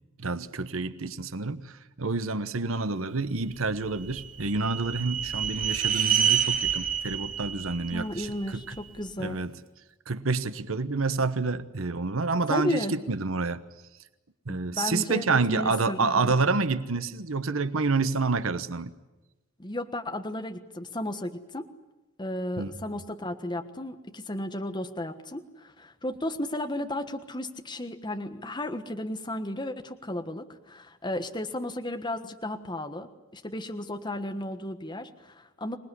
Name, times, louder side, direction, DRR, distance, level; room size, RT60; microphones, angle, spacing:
voice 1, 0.2-8.8 9.2-9.5 10.1-13.6 14.5-18.9 22.6-22.7, right 3 dB, 75° right, 1.1 m, -28 dB
sound 1, 3.7-8.9, right 9 dB, 40° right, 2.6 m, -28 dB
voice 2, 7.9-9.4 12.5-12.9 14.5-16.3 19.6-21.7 22.2-35.8, left 1 dB, 20° left, 1.4 m, -34 dB
26.0 x 19.5 x 9.9 m
head